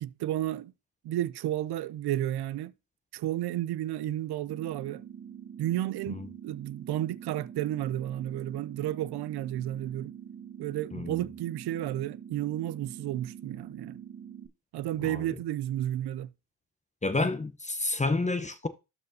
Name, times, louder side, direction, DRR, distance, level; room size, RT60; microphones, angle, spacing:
voice 1, 0.0-0.7 1.0-2.7 3.1-5.0 5.6-10.1 10.6-14.0 14.7-16.3, right 13 dB, 65° right, 0.6 m, -32 dB
sound 1, 4.5-14.5, right 8 dB, 40° right, 1.6 m, -45 dB
voice 2, 10.9-11.2 15.0-15.3 17.0-18.7, left 3 dB, 15° left, 0.7 m, -30 dB
12.5 x 4.5 x 2.8 m
supercardioid pair, 65°, 43 cm